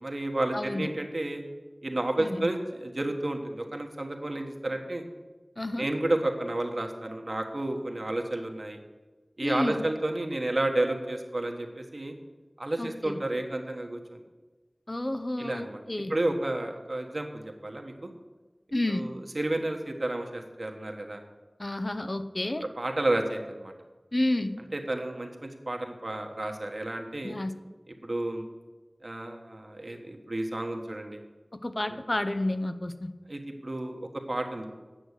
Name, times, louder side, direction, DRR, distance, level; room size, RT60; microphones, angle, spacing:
voice 1, 0.0-1.4 1.8-5.0 5.8-8.8 9.4-12.1 12.6-14.2 15.4-15.8 16.1-18.1 18.9-21.2 22.8-23.7 24.7-27.4 28.0-28.4 29.0-31.2 33.3-34.7, right 1 dB, 60° right, 3 dB, 1.3 m, -31 dB
voice 2, 0.5-0.9 2.2-2.5 5.6-5.9 9.4-9.8 12.8-13.2 14.9-16.1 18.7-19.1 21.6-22.6 24.1-24.6 27.2-27.5 31.5-33.1, left 1 dB, 45° left, 9 dB, 0.7 m, -30 dB
8.8 x 6.3 x 8.2 m, 1.3 s
wide cardioid pair, 40°, 0 cm